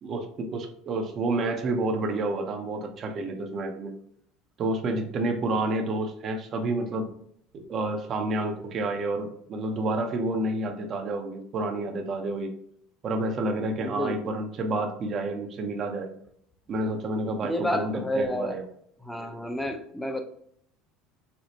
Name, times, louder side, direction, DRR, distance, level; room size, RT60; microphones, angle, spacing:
voice 1, 0.0-3.9 4.6-7.1 7.5-12.5 13.0-16.1 16.7-18.6, right 2 dB, 45° right, 4 dB, 0.6 m, -29 dB
voice 2, 13.8-14.2 17.4-18.6 19.0-20.2, left 1 dB, 5° left, 6 dB, 0.5 m, -30 dB
4.2 x 2.0 x 2.9 m, 0.67 s
supercardioid pair, 100°, 0 cm